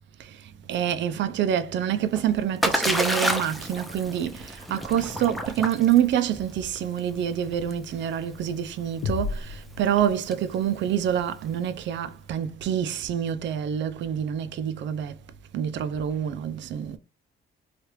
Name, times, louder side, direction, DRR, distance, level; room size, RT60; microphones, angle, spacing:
voice 1, 0.2-15.2 15.5-17.0, right 9 dB, 65° right, 0.4 m, -27 dB
Splash splatter, 1.9-11.8, equal, ahead, 0.5 m, -32 dB
sound 1, 9.0-10.8, left 4 dB, 85° left, 0.5 m, -33 dB
3.2 x 2.4 x 3.0 m
cardioid pair, 90°, 20 cm